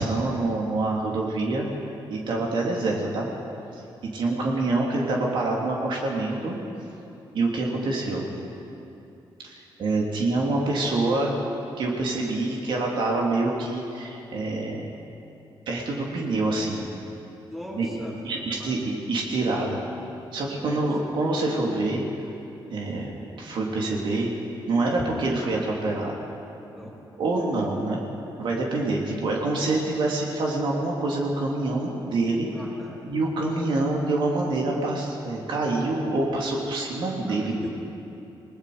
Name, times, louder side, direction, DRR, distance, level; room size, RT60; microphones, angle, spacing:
voice 1, 0.0-1.7 2.1-3.3 3.7-6.6 7.3-8.2 9.4-11.3 11.8-14.9 15.7-16.8 17.7-17.9 18.2-19.8 20.3-22.0 22.7-23.1 23.4-24.3 24.7-26.1 27.2-28.0 28.4-32.5 33.0-37.7, right 2 dB, 65° right, -2 dB, 3.2 m, -26 dB
voice 2, 17.5-18.2 18.5-18.9 20.6-20.8 26.7-27.0 32.5-33.0 37.3-37.8, left 1 dB, 5° right, -3 dB, 3.3 m, -39 dB
29.0 x 20.0 x 5.1 m, 2.8 s
wide cardioid pair, 180°, 9 cm